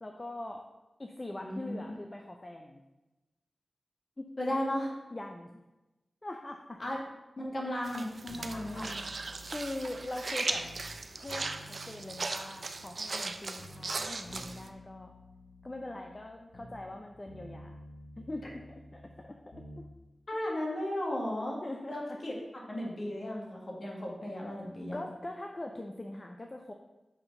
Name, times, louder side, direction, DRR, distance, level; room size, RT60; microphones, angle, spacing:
voice 1, 0.0-0.6 1.0-2.8 4.2-4.3 5.1-5.5 6.2-6.8 9.5-10.7 11.2-15.1 15.6-17.8 18.2-19.9 21.6-22.2 24.9-26.7, left 1 dB, 25° left, 3 dB, 0.5 m, -42 dB
voice 2, 1.4-1.9 4.4-4.9 6.8-7.0 7.4-9.0 20.3-21.6 21.9-22.3 22.7-25.0, left 1 dB, 45° left, -2 dB, 1.7 m, -35 dB
sound 1, 7.8-14.7, right 3 dB, 55° right, 0.5 m, -38 dB
sound 2, 8.3-11.0 11.3-13.3 13.6-17.0 17.3-19.9 20.2-20.3, equal, 60° left, 1.1 m, -51 dB
5.8 x 4.4 x 5.3 m, 1.0 s
wide cardioid pair, 115°, 0 cm